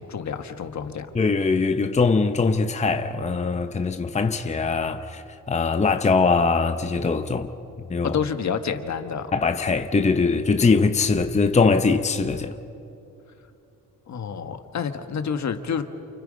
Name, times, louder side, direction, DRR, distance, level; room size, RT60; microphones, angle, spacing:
voice 1, 0.0-1.1 8.0-9.3 14.1-15.8, left 7 dB, 60° left, 1.5 m, -29 dB
voice 2, 1.1-7.5 7.9-8.2 9.3-12.5, left 4 dB, 20° left, 0.8 m, -22 dB
29.0 x 29.0 x 5.2 m
cardioid pair, 120°, 32 cm